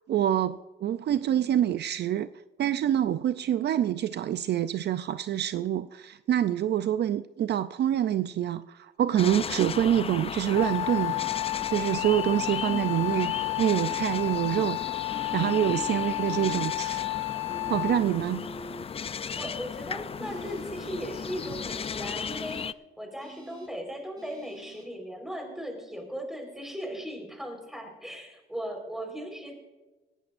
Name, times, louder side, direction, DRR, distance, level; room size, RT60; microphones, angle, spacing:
voice 1, 0.1-2.3 2.6-11.2 11.7-14.8 15.3-17.0 17.7-18.5, right 11 dB, 60° right, 0.5 m, -26 dB
sound 1, 9.2-22.7, left 6 dB, 30° left, 0.4 m, -36 dB
Wind instrument woodwind instrument, 10.5-18.2, left 22 dB, 80° left, 0.5 m, -32 dB
sound 2, 10.5-11.7 12.6-14.2 15.1-16.7 17.5-18.8 20.2-20.6 21.3-21.6 22.3-22.6 23.2-23.7 24.2-24.8, right 1 dB, 20° right, 5.0 m, -46 dB
voice 2, 19.3-22.6 23.0-29.6, equal, ahead, 4.3 m, -37 dB
18.5 x 15.5 x 2.5 m
cardioid pair, 90°, 20 cm